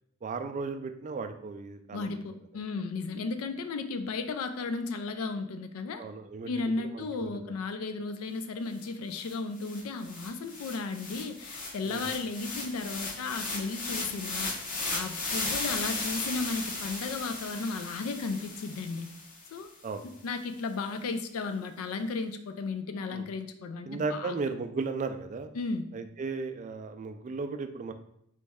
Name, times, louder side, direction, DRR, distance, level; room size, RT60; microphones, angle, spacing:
voice 1, 0.2-2.2 6.0-6.5 6.9-7.5 11.8-12.1 19.8-20.0 23.1-23.2 23.9-25.5 25.9-27.9, right 4 dB, 35° right, 8 dB, 0.3 m, -35 dB
voice 2, 1.9-6.0 6.4-14.5 14.9-19.1 19.5-19.7 20.0-24.4 25.5-25.9, left 3 dB, 80° left, 8 dB, 0.4 m, -34 dB
sound 1, 8.8-8.9 9.2-19.5, left 3 dB, 40° left, 0.8 m, -36 dB
4.1 x 3.1 x 3.5 m, 0.75 s
head